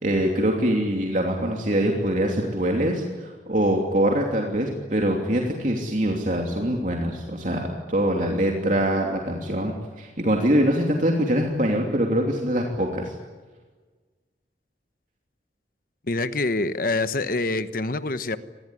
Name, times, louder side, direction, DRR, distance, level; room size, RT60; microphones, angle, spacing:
voice 1, 0.0-13.1, right 1 dB, 45° right, 1 dB, 3.0 m, -24 dB
voice 2, 16.1-18.4, left 2 dB, 50° left, 12 dB, 1.1 m, -25 dB
26.0 x 20.0 x 10.0 m, 1.4 s
head